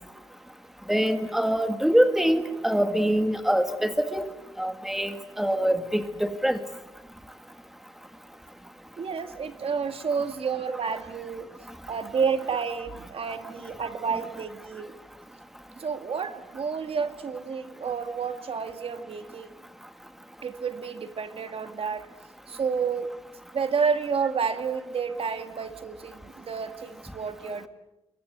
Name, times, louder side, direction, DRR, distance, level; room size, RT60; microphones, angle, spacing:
voice 1, 0.9-4.3 4.6-6.6, equal, 5° right, 8 dB, 1.9 m, -24 dB
voice 2, 9.0-11.5 11.9-14.9 15.8-19.5 20.4-22.1 22.5-23.1 23.5-27.7, right 5 dB, 65° right, 8 dB, 2.1 m, -30 dB
29.0 x 23.5 x 8.1 m, 0.92 s
wide cardioid pair, 160°, 11 cm